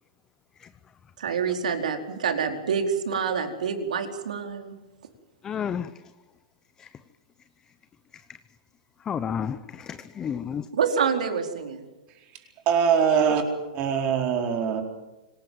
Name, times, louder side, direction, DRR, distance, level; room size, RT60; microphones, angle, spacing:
voice 1, 1.2-4.7 10.7-11.8, right 6 dB, 85° right, 4.5 m, -27 dB
voice 2, 5.4-5.9 6.8-6.9 9.1-10.7, left 8 dB, 15° left, 0.8 m, -31 dB
voice 3, 12.3-13.4 13.7-14.8, right 7 dB, 30° right, 4.4 m, -23 dB
26.0 x 19.0 x 7.8 m
hypercardioid pair, 155°, 4 cm